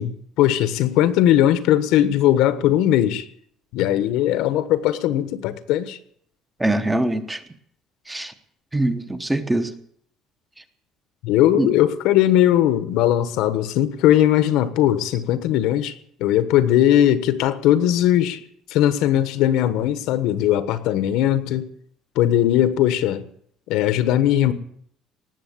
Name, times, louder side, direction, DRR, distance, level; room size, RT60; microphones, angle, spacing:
voice 1, 0.0-3.2 3.7-6.0 11.2-18.4 18.7-21.7 22.1-23.2 23.7-24.5, left 12 dB, 70° left, 1.3 m, -19 dB
voice 2, 6.6-7.4 8.1-8.3 8.7-9.7 11.6-11.7, right 1 dB, 5° right, 0.9 m, -23 dB
18.5 x 7.8 x 9.5 m
cardioid pair, 175°, 0 cm